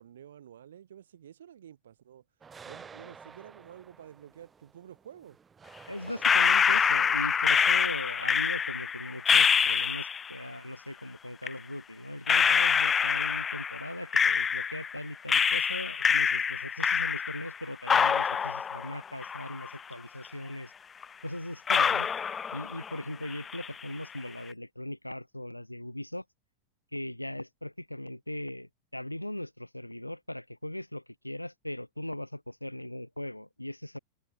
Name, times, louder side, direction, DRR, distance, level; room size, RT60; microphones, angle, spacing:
voice 1, 0.0-2.2 2.6-5.4, right 10 dB, 65° right, 4.9 m, -50 dB
sound 1, 2.4-8.9, right 6 dB, 15° right, 1.4 m, -52 dB
voice 2, 5.9-20.7 21.2-22.1 22.5-26.2 26.9-34.0, left 1 dB, 85° left, 2.1 m, -39 dB
sound 2, 6.2-10.3 11.4-11.5 12.3-15.0 15.3-17.6 17.9-19.9 20.2-20.3 21.0-21.1 21.7-23.0 23.3-23.8, left 7 dB, 20° left, 0.3 m, -26 dB
figure-of-eight pair, 90°, 0 cm